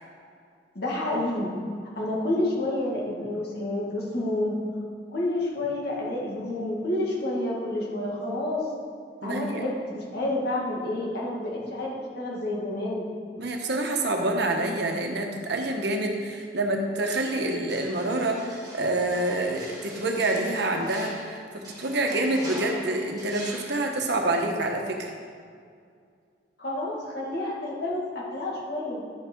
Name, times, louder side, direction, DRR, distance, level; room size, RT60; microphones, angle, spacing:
voice 1, 0.7-1.5 2.0-4.6 5.1-8.7 9.2-13.1 26.6-29.0, left 1 dB, 60° left, -4 dB, 2.1 m, -29 dB
voice 2, 9.2-9.6 13.4-25.1, right 2 dB, 65° right, 2 dB, 1.1 m, -27 dB
sound 1, 17.1-24.2, right 1 dB, 20° right, 2.2 m, -44 dB
11.0 x 5.8 x 4.6 m, 2.2 s
head